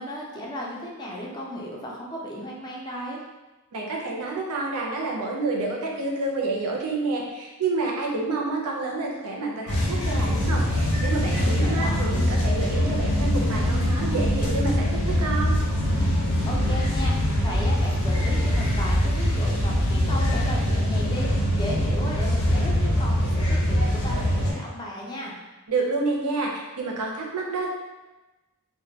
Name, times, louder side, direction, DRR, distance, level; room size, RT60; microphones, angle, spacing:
voice 1, 0.0-3.2 11.4-12.1 16.4-25.4, equal, 20° left, -3 dB, 0.4 m, -35 dB
voice 2, 3.7-15.6 25.7-27.7, right 3 dB, 90° right, -1 dB, 0.5 m, -29 dB
sound 1, 9.7-24.5, equal, 65° left, 0.6 m, -23 dB
2.2 x 2.1 x 2.7 m, 1.1 s
head